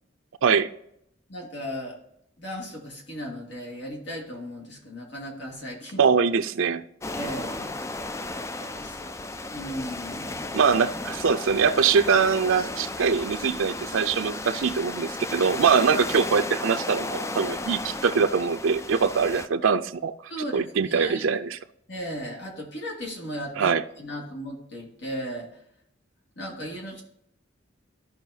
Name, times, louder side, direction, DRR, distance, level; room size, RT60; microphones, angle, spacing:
voice 1, 1.3-2.0 2.4-6.0 7.1-8.1 8.5-9.1 9.5-10.5 20.3-21.3 21.9-25.5 26.4-27.0, equal, 65° left, 2.3 m, -36 dB
voice 2, 6.0-6.8 10.5-20.1 20.5-21.6 23.6-23.8, right 6 dB, 85° right, 0.5 m, -23 dB
sound 1, 7.0-19.5, left 2 dB, 15° left, 0.4 m, -34 dB
14.0 x 5.4 x 2.8 m
head